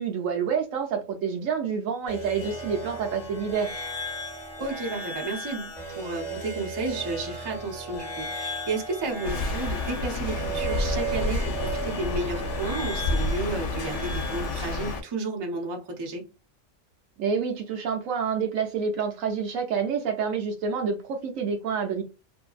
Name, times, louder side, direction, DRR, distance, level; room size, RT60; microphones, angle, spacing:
voice 1, 0.0-3.7 17.2-22.0, right 6 dB, 85° right, 1.1 m, -28 dB
sound 1, 2.1-14.9, right 2 dB, 20° left, 1.0 m, -36 dB
voice 2, 4.6-16.3, right 3 dB, 35° right, 0.4 m, -32 dB
sound 2, 9.2-15.0, left 2 dB, 70° left, 0.9 m, -29 dB
2.6 x 2.6 x 2.4 m
omnidirectional pair, 1.3 m